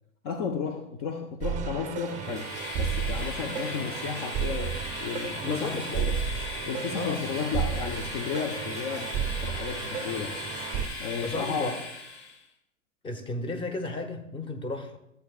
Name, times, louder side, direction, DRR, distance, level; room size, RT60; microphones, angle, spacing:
voice 1, 0.2-2.5 2.8-6.2 6.7-10.4 11.0-11.8, left 6 dB, 35° left, 5 dB, 0.7 m, -33 dB
sound 1, 1.4-10.9, right 8 dB, 20° right, 0.6 m, -33 dB
Train, 1.9-12.4, left 2 dB, 60° left, 2.1 m, -38 dB
voice 2, 5.4-6.0 7.0-7.2 11.2-11.8 13.0-15.0, left 2 dB, 15° left, 6 dB, 1.0 m, -33 dB
14.0 x 8.0 x 2.4 m, 0.79 s
figure-of-eight pair, 95°, 39 cm